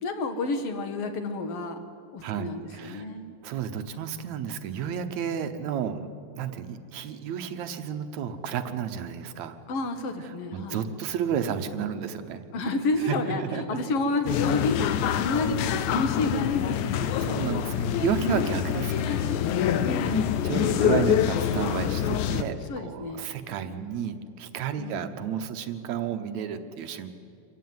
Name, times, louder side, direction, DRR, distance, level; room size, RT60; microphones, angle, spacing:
voice 1, 0.0-1.8 2.1-3.4 9.7-10.8 12.5-18.1 19.8-21.0 22.7-23.2 24.7-25.1, left 2 dB, 50° left, 7 dB, 2.2 m, -31 dB
voice 2, 2.2-3.1 3.4-6.1 6.3-9.6 10.2-12.4 13.1-13.6 17.2-19.2 20.4-27.1, right 8 dB, 65° right, 8 dB, 2.1 m, -32 dB
sound 1, 14.3-22.4, left 9 dB, 75° left, 2.2 m, -26 dB
26.0 x 15.0 x 9.4 m, 2.4 s
omnidirectional pair, 3.8 m